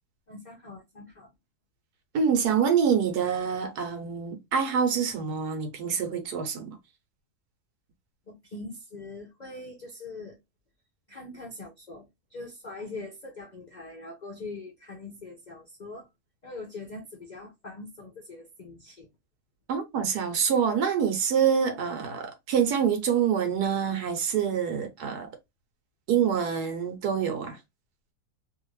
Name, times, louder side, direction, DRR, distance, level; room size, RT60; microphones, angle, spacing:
voice 1, 0.3-1.3 8.3-10.4 11.1-16.1 16.4-19.1, left 2 dB, 55° left, 0.4 m, -42 dB
voice 2, 2.1-6.8 19.7-25.3 26.1-27.6, right 7 dB, 80° right, 1.3 m, -26 dB
2.8 x 2.5 x 3.0 m
omnidirectional pair, 1.7 m